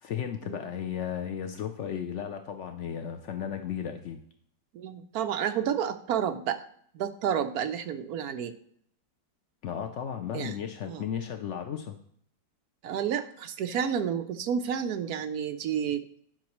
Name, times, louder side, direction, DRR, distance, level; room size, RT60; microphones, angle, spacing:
voice 1, 0.0-4.2 9.6-12.0, left 8 dB, 80° left, 6 dB, 0.6 m, -34 dB
voice 2, 4.7-6.6 6.9-8.5 10.3-10.5 10.9-11.0 12.8-16.1, right 8 dB, 70° right, 9 dB, 1.0 m, -30 dB
10.0 x 5.9 x 3.0 m, 0.64 s
omnidirectional pair, 1.9 m